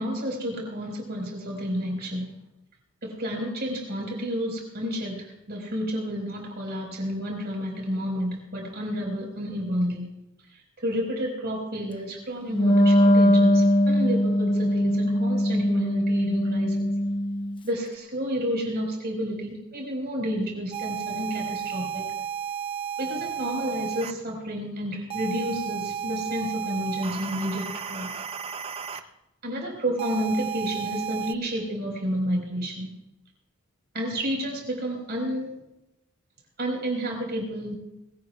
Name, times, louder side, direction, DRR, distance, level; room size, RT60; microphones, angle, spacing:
voice 1, 0.0-2.3 3.0-10.1 10.8-16.9 17.6-22.1 23.0-28.1 29.4-32.9 33.9-35.5 36.6-37.8, equal, 50° right, 0 dB, 4.7 m, -30 dB
Wind instrument woodwind instrument, 12.5-17.6, equal, 25° left, 0.8 m, -21 dB
sound 1, 20.7-24.1 25.1-29.0 30.0-31.3, right 8 dB, 25° right, 0.6 m, -33 dB
21.5 x 17.0 x 2.3 m, 0.93 s
head